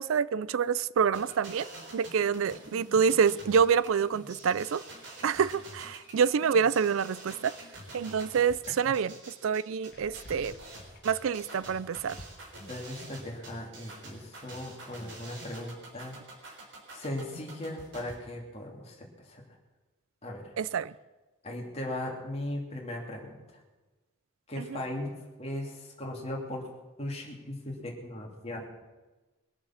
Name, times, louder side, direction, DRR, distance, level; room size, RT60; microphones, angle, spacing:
voice 1, 0.0-1.7 1.9-4.8 5.2-7.5 7.9-10.6 11.0-12.2 20.6-20.9 24.6-24.7, right 6 dB, 75° right, 0.4 m, -27 dB
sound 1, 1.1-18.1, right 1 dB, 60° right, 4.0 m, -47 dB
sound 2, 9.9-13.9 14.2-14.4 14.8-14.9, left 1 dB, 50° left, 1.6 m, -52 dB
voice 2, 12.7-16.1 16.4-16.6 16.9-19.6 20.2-20.5 21.4-23.6 24.5-26.7 27.0-28.7, left 1 dB, 30° left, 2.7 m, -38 dB
22.0 x 7.4 x 7.2 m
head